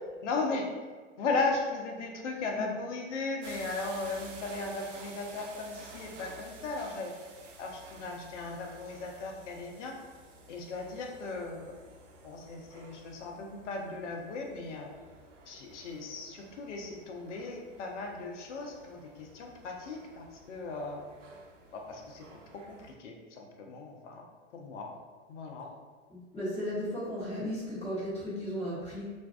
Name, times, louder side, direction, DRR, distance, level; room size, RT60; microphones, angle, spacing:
voice 1, 0.2-0.7 1.2-7.1 7.6-10.0 10.5-11.7 12.2-15.0 15.5-21.0 21.7-22.3 22.5-24.2 24.5-24.9 25.3-25.7, left 3 dB, 70° left, 1 dB, 0.6 m, -37 dB
sound 1, 3.4-22.9, right 3 dB, 75° right, 0.6 m, -52 dB
voice 2, 26.1-29.0, equal, 15° left, -9 dB, 0.9 m, -35 dB
2.5 x 2.2 x 2.3 m, 1.4 s
hypercardioid pair, 110°, 37 cm